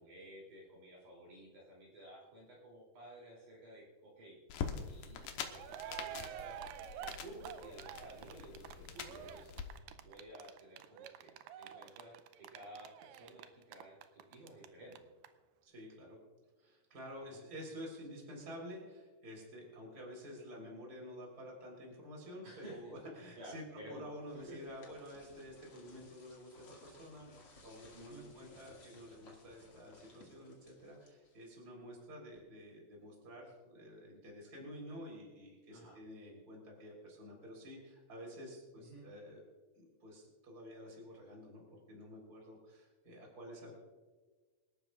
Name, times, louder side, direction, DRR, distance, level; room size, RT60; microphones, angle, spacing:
voice 1, 0.0-6.6 7.0-9.7 9.9-15.1 17.1-17.5 22.4-22.9 23.4-24.6 27.9-28.3 35.7-36.0 38.8-39.1, right 1 dB, 60° right, -4 dB, 4.5 m, -54 dB
sound 1, 4.5-9.7, left 7 dB, 75° left, 2.6 m, -45 dB
Cheering, 5.2-5.3 5.5-14.7 14.9-15.0 15.2-15.3, right 11 dB, 80° right, 2.2 m, -48 dB
voice 2, 15.6-16.2 16.6-23.6 23.9-39.4 39.7-43.7, equal, 25° right, -1 dB, 4.1 m, -50 dB
sound 2, 23.9-31.7, left 3 dB, 40° left, 2.7 m, -61 dB
27.0 x 12.0 x 2.5 m, 1.4 s
omnidirectional pair, 4.2 m